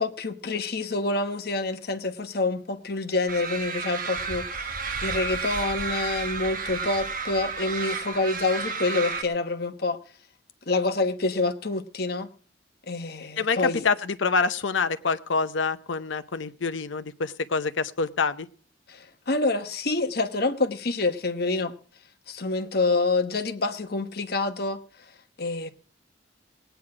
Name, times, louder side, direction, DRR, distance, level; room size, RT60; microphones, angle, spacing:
voice 1, 0.0-10.0 10.7-12.3 12.9-13.9 18.9-21.7 22.3-24.8 25.4-25.7, left 3 dB, 55° left, 1.1 m, -27 dB
sound 1, 3.3-9.2, right 5 dB, 45° right, 1.2 m, -32 dB
voice 2, 13.4-18.5, left 4 dB, 80° left, 0.7 m, -26 dB
19.0 x 9.2 x 4.8 m
head